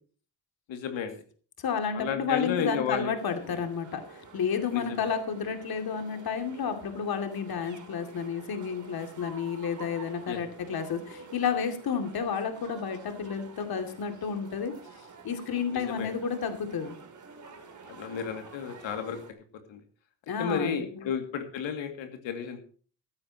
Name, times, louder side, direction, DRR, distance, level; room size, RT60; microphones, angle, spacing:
voice 1, 0.7-1.2 1.9-3.1 3.4-3.6 4.7-5.0 10.3-10.4 15.7-16.1 17.9-19.2 19.7-19.8 20.4-22.6, left 6 dB, 80° left, 5 dB, 2.5 m, -32 dB
voice 2, 1.6-14.8 15.2-17.0 20.3-21.1, left 6 dB, 55° left, 6 dB, 2.6 m, -31 dB
sound 1, 3.1-19.3, right 4 dB, 40° right, 3.3 m, -49 dB
15.5 x 13.0 x 2.9 m, 0.41 s
cardioid pair, 140°, 45 cm